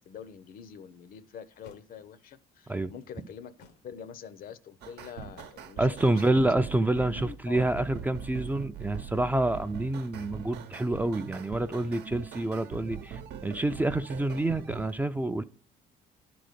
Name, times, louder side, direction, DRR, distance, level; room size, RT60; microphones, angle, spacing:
voice 1, 0.0-3.5 3.8-6.0 6.2-7.7, left 8 dB, 55° left, 0.6 m, -46 dB
sound 1, 0.7-0.8 1.6-1.9 3.6-3.9 5.3-5.7, left 5 dB, 90° left, 1.0 m, -54 dB
sound 2, 4.8-14.9, right 7 dB, 80° right, 0.8 m, -42 dB
voice 2, 5.8-15.4, right 2 dB, 10° right, 0.4 m, -28 dB
11.0 x 3.9 x 6.6 m
cardioid pair, 110°, 17 cm